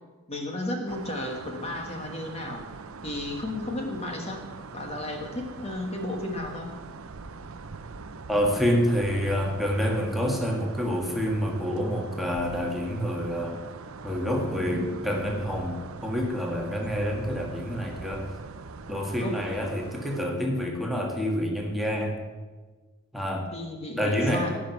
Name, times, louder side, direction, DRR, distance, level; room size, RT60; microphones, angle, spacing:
voice 1, 0.3-2.6 3.0-4.5 4.7-6.7 19.2-19.4 23.5-24.6, left 1 dB, 30° left, 2 dB, 1.4 m, -33 dB
sound 1, 0.9-20.3, right 4 dB, 75° right, 0.7 m, -42 dB
voice 2, 8.3-13.6 14.0-18.3 18.9-22.2 23.1-23.5 23.9-24.5, equal, ahead, 0 dB, 1.7 m, -27 dB
16.5 x 6.2 x 9.1 m, 1.3 s
head